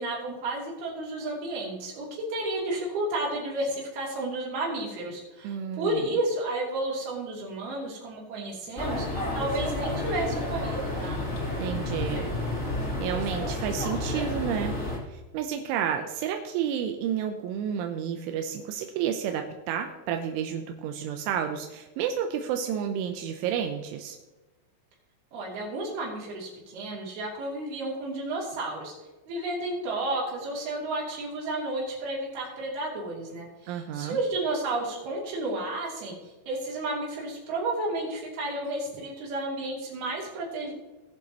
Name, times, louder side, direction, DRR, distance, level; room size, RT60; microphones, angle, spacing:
voice 1, 0.0-9.1 9.3-11.2 25.3-28.9 29.3-36.1 36.5-40.7, right 2 dB, 55° right, -3 dB, 4.6 m, -32 dB
voice 2, 5.4-6.0 11.6-12.3 13.0-14.8 15.1-24.2 33.7-34.2, right 8 dB, 85° right, 5 dB, 3.2 m, -31 dB
sound 1, 8.8-15.0, left 1 dB, 20° left, 2.3 m, -30 dB
19.0 x 7.3 x 3.0 m, 1.1 s
omnidirectional pair, 5.5 m